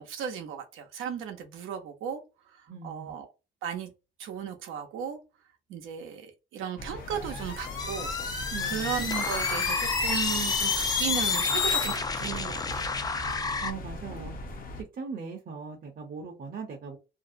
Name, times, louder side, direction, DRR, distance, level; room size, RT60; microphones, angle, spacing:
voice 1, 0.0-2.2 2.5-3.3 3.6-3.9 4.2-5.2 5.7-13.0, right 8 dB, 90° right, 0.7 m, -36 dB
voice 2, 2.7-3.2 8.5-9.0 13.6-14.3 14.8-17.0, right 5 dB, 45° right, 0.7 m, -39 dB
sound 1, 6.8-14.8, left 1 dB, 45° left, 0.7 m, -40 dB
sound 2, 7.1-12.0, left 5 dB, 80° left, 0.9 m, -30 dB
sound 3, 7.8-13.7, left 4 dB, 20° left, 0.4 m, -33 dB
2.6 x 2.0 x 2.5 m
cardioid pair, 90°, 20 cm